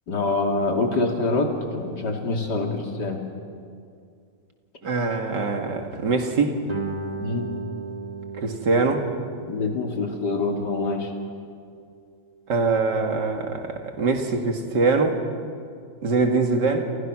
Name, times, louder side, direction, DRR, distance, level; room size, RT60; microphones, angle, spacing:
voice 1, 0.1-3.2 7.2-7.5 9.5-11.1, left 3 dB, 75° left, 2 dB, 3.3 m, -25 dB
voice 2, 4.8-6.6 8.4-9.0 12.5-15.2 16.0-16.9, right 3 dB, 80° right, 4 dB, 2.8 m, -23 dB
Guitar, 6.7-12.0, right 4 dB, 20° right, 2.2 m, -36 dB
29.0 x 28.5 x 6.2 m, 2.3 s
omnidirectional pair, 1.8 m